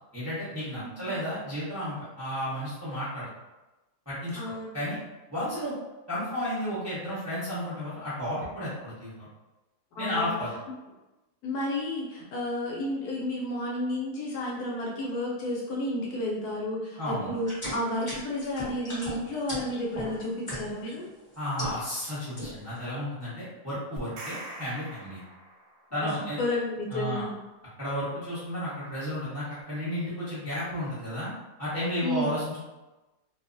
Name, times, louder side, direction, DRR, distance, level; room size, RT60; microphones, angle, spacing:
voice 1, 0.1-3.3 4.1-4.4 4.7-5.0 5.3-5.7 6.1-9.3 10.0-10.5 17.0-17.3 21.4-25.2 25.9-26.4 26.9-27.2 27.8-31.3 31.6-32.6, equal, 15° right, -11 dB, 0.6 m, -32 dB
voice 2, 0.8-1.2 4.3-4.7 10.0-10.4 10.7-10.8 11.4-21.1 26.4-27.3 32.0-32.3, left 1 dB, 75° left, -3 dB, 1.1 m, -31 dB
sound 1, 17.4-20.9 21.3-22.1 22.4-22.8, equal, 25° left, 0.8 m, -37 dB
sound 2, 24.0-25.9, right 1 dB, 75° right, 1.2 m, -42 dB
2.7 x 2.3 x 2.5 m, 1.1 s
omnidirectional pair, 1.8 m